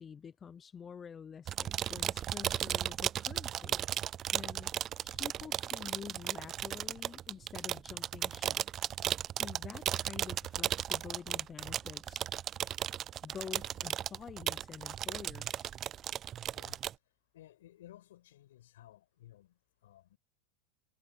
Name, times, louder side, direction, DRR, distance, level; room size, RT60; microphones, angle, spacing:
voice 1, 0.0-3.9 4.3-4.7 5.0-8.6 9.4-12.6 13.2-15.7, left 7 dB, 20° left, 0.6 m, -48 dB
sound 1, 1.5-16.9, right 10 dB, 30° right, 0.3 m, -35 dB
voice 2, 17.3-20.2, left 13 dB, 80° left, 6.7 m, -57 dB
supercardioid pair, 125°, 0 cm